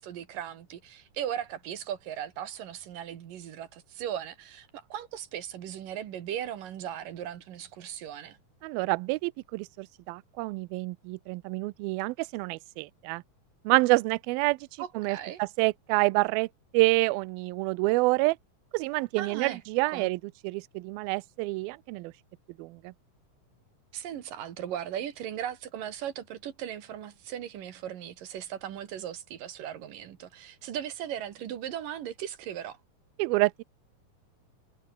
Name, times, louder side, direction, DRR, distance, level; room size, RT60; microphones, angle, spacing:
voice 1, 0.0-8.4 14.8-15.4 19.2-19.6 19.9-20.1 23.9-32.8, right 10 dB, 70° right, 3.2 m, -37 dB
voice 2, 8.6-13.2 13.7-14.6 15.0-16.5 16.7-18.4 18.7-20.2 20.4-22.1 22.6-22.9 33.2-33.5, right 23 dB, 85° right, 2.4 m, -27 dB
omnidirectional pair, 4.3 m